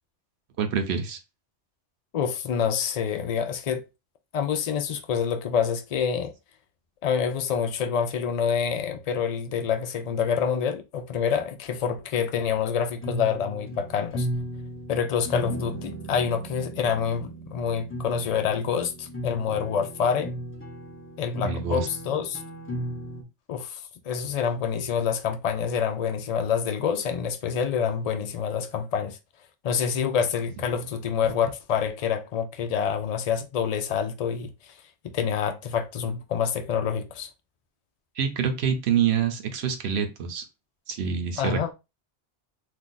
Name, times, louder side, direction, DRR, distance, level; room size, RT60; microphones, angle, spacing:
voice 1, 0.6-1.2 21.4-21.9 38.2-40.4 40.9-41.7, right 7 dB, 70° right, 0.9 m, -26 dB
voice 2, 2.1-3.8 4.3-6.3 7.0-14.3 14.9-20.3 21.2-22.4 23.5-23.8 24.1-29.2 29.6-34.5 35.0-37.3 41.4-41.7, left 7 dB, 70° left, 0.3 m, -27 dB
sound 1, 13.0-23.2, right 1 dB, 15° left, 0.5 m, -36 dB
2.6 x 2.3 x 3.8 m
omnidirectional pair, 1.2 m